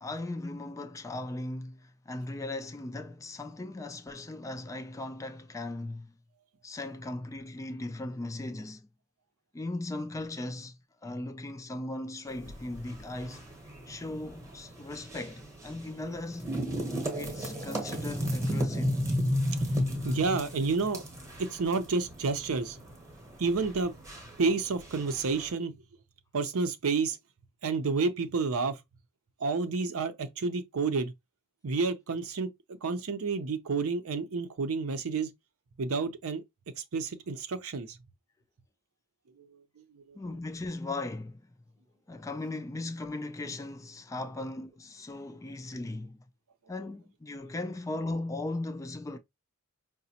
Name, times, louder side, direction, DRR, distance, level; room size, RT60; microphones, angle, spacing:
voice 1, 0.0-6.1 6.6-8.9 9.5-13.5 13.9-16.6 17.1-19.0 40.1-41.5 42.1-46.2 46.7-49.2, left 2 dB, 15° left, 0.3 m, -38 dB
sound 1, 12.3-25.5, equal, 15° right, 0.9 m, -34 dB
voice 2, 20.0-21.0 21.4-22.8 23.4-23.9 24.4-25.7 26.3-27.2 27.6-28.8 29.4-31.1 31.6-35.3 35.8-36.4 36.9-38.0 39.4-39.5 39.9-40.2, right 4 dB, 70° right, 0.6 m, -30 dB
5.0 x 2.1 x 2.8 m
head